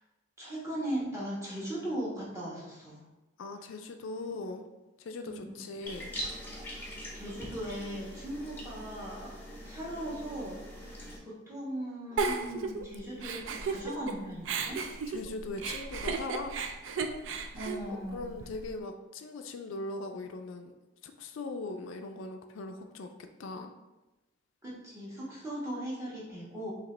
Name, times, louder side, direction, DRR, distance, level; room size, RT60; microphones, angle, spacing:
voice 1, 0.4-3.0 5.2-5.6 7.1-9.3 9.6-11.0 11.2-14.8 17.5-18.3 24.6-26.7, right 1 dB, 15° right, -7 dB, 1.3 m, -38 dB
voice 2, 3.4-4.6 5.0-6.1 15.1-16.6 18.1-20.7 21.0-23.1 23.4-23.7, left 2 dB, 75° left, 6 dB, 0.4 m, -40 dB
sound 1, 5.8-11.2, equal, 10° left, 0.8 m, -42 dB
Giggle, 12.2-14.1 14.4-18.7, right 4 dB, 70° right, 0.4 m, -34 dB
4.8 x 2.9 x 3.2 m, 1.1 s
head